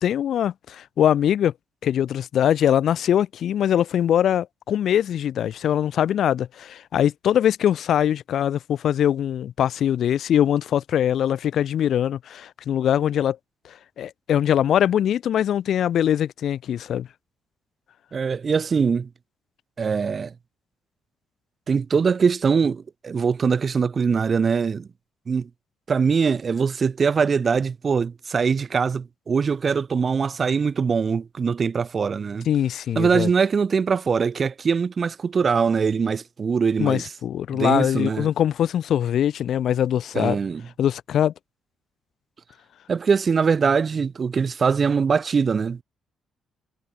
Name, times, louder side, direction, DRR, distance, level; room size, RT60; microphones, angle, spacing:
voice 1, 0.0-1.5 1.8-13.4 13.6-17.1 32.5-33.3 36.8-40.4 40.8-41.3, left 10 dB, 65° left, 2.6 m, -22 dB
voice 2, 18.1-19.1 19.8-20.3 21.7-24.9 25.3-25.5 25.9-32.5 32.9-37.0 37.5-38.3 40.1-40.7 42.9-45.8, right 5 dB, 40° right, 1.2 m, -22 dB
cardioid pair, 90°, 0 cm